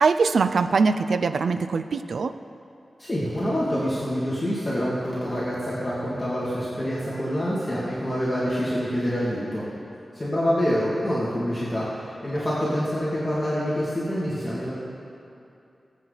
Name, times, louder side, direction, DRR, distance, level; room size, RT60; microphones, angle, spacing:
voice 1, 0.0-2.3, right 4 dB, 75° right, 10 dB, 0.5 m, -22 dB
voice 2, 3.0-9.6 10.1-14.7, equal, 15° left, -9 dB, 2.3 m, -26 dB
21.0 x 8.3 x 4.0 m, 2.7 s
wide cardioid pair, 135°, 0 cm